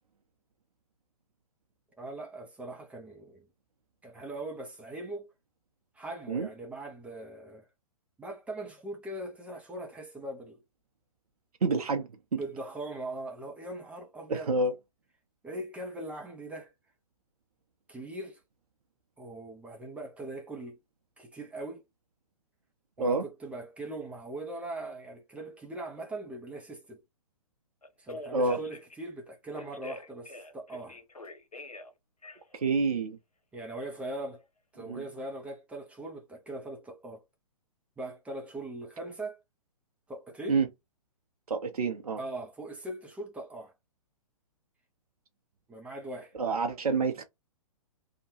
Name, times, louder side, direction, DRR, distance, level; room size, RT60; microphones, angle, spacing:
voice 1, 2.0-3.5 4.0-5.3 5.9-7.7 8.2-10.6 12.4-14.5 15.4-16.7 17.9-18.4 19.2-20.8 21.2-21.8 23.0-27.0 28.0-31.0 33.5-34.4 34.7-37.2 38.0-39.4 40.1-40.6 42.2-43.7 45.7-46.4, right 2 dB, 5° right, 0.4 m, -40 dB
voice 2, 11.6-12.4 14.3-14.7 23.0-23.2 28.3-28.6 32.5-33.2 34.9-35.0 40.5-40.7 41.5-42.2 46.4-47.2, right 3 dB, 80° right, 0.6 m, -28 dB
Telephone, 27.8-28.9 29.5-31.9 32.2-32.6, left 2 dB, 85° left, 0.9 m, -44 dB
2.8 x 2.2 x 2.9 m
figure-of-eight pair, 120°, 19 cm